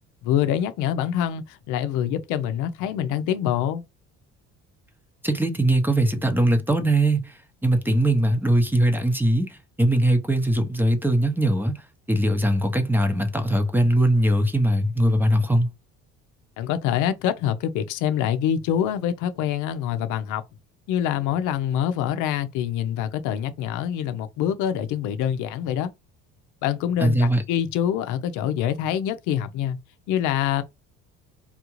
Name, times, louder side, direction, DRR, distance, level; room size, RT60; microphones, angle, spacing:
voice 1, 0.2-3.8 16.6-20.4 20.9-25.9 26.6-29.8 30.1-30.6, left 10 dB, 80° left, 0.6 m, -25 dB
voice 2, 5.2-15.7 27.0-27.4, right 1 dB, 5° right, 0.7 m, -21 dB
3.6 x 2.5 x 3.0 m
cardioid pair, 105°, 30 cm